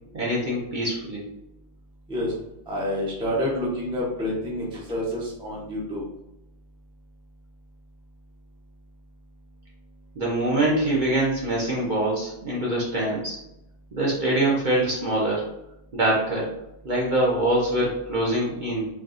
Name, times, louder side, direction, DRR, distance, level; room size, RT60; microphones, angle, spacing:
voice 1, 0.1-1.2 10.2-13.4 13.9-15.4 15.9-16.5 16.8-18.9, right 1 dB, 45° right, -5 dB, 0.8 m, -24 dB
voice 2, 2.7-6.0, left 1 dB, 5° right, -5 dB, 0.6 m, -28 dB
3.3 x 2.3 x 2.6 m, 0.87 s
omnidirectional pair, 1.3 m